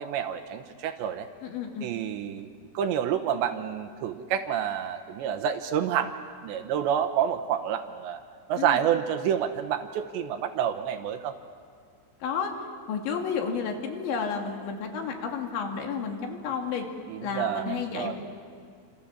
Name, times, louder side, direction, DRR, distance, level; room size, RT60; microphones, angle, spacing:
voice 1, 0.0-1.3 1.8-2.5 2.7-6.1 6.4-8.2 8.5-11.3 17.1-18.1, right 9 dB, 75° right, 7 dB, 2.9 m, -28 dB
voice 2, 1.4-1.9 8.6-8.8 12.2-12.5 12.9-16.9 17.2-18.1, left 6 dB, 65° left, 2 dB, 4.6 m, -31 dB
29.0 x 27.0 x 7.4 m, 2.2 s
omnidirectional pair, 6.0 m